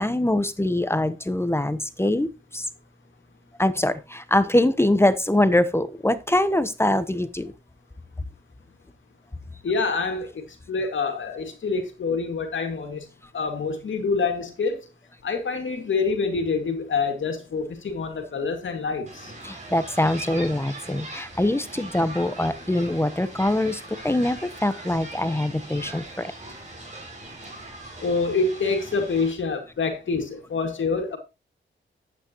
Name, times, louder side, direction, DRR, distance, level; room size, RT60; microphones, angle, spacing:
voice 1, 0.0-2.7 3.6-7.5 19.4-26.3, left 1 dB, 10° left, 0.9 m, -23 dB
voice 2, 9.6-10.3 10.7-13.1 13.3-14.8 15.2-19.3 28.0-31.2, left 4 dB, 70° left, 2.2 m, -26 dB
sound 1, 19.1-29.3, right 2 dB, 35° right, 6.2 m, -40 dB
11.0 x 8.6 x 3.0 m
cardioid pair, 70°, 20 cm